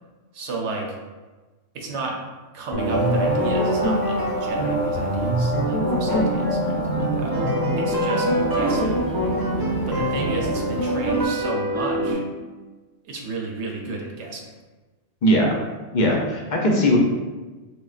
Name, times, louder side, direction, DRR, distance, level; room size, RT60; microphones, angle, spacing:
voice 1, 0.3-0.9 1.7-2.2 2.5-7.3 7.8-9.0 9.9-12.2 13.0-14.5, right 3 dB, 70° right, 0 dB, 0.9 m, -32 dB
sound 1, 2.7-12.1, right 1 dB, 25° right, 0.5 m, -24 dB
sound 2, 2.8-11.2, equal, 5° left, 0.8 m, -28 dB
voice 2, 15.2-15.6 15.9-17.0, equal, 55° left, -1 dB, 0.5 m, -19 dB
3.8 x 3.2 x 2.4 m, 1.3 s
omnidirectional pair, 1.3 m